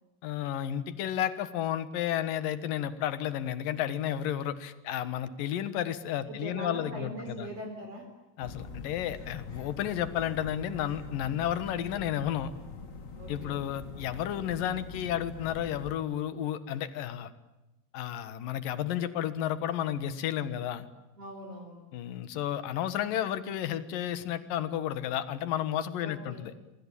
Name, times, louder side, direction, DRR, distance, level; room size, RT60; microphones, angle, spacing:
voice 1, 0.2-7.5 8.4-12.5 13.3-17.3 17.9-20.9 21.9-26.5, left 11 dB, 65° left, 13 dB, 3.0 m, -32 dB
voice 2, 6.3-8.1 13.1-13.6 21.2-21.9 26.0-26.5, right 1 dB, 40° right, 2 dB, 5.0 m, -41 dB
sound 1, 8.4-16.0, left 4 dB, 90° left, 0.7 m, -44 dB
25.5 x 25.0 x 8.9 m, 1.0 s
omnidirectional pair, 4.5 m